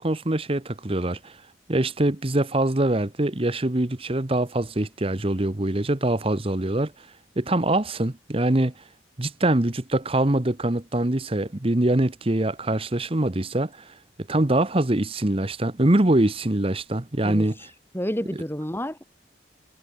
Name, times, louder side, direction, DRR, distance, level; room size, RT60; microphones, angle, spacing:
voice 1, 0.0-1.3 1.7-6.9 7.4-8.7 9.2-13.9 14.3-17.5, right 1 dB, 30° right, 1.1 m, -23 dB
voice 2, 17.2-17.7 17.9-19.2, equal, 10° left, 2.7 m, -30 dB
head